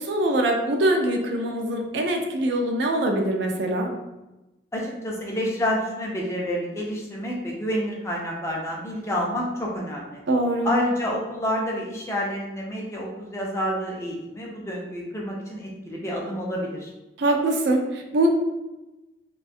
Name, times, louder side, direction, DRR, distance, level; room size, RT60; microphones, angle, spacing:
voice 1, 0.0-3.9 10.3-10.7 17.2-18.3, right 1 dB, 75° right, 3 dB, 0.4 m, -23 dB
voice 2, 4.7-10.2 10.6-16.9, equal, 15° left, -2 dB, 0.4 m, -28 dB
2.4 x 2.2 x 2.6 m, 1.0 s
head